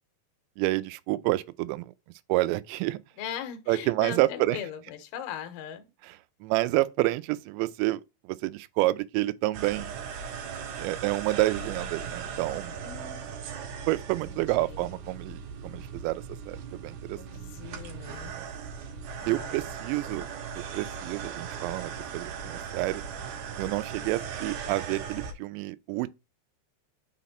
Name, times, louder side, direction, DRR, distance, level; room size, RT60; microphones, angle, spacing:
voice 1, 0.6-1.9 2.3-3.0 3.7-4.6 6.1-6.2 6.4-9.9 10.8-12.7 13.9-17.2 18.4-18.5 19.3-20.3 20.6-23.0 23.6-26.1, right 19 dB, 85° right, 2.8 m, -29 dB
voice 2, 3.2-5.9 12.8-13.2 14.2-14.8 17.2-18.3 19.2-19.6, left 9 dB, 75° left, 2.7 m, -39 dB
sound 1, 9.5-25.3, right 6 dB, 70° right, 2.6 m, -38 dB
6.4 x 4.2 x 4.1 m
omnidirectional pair, 5.1 m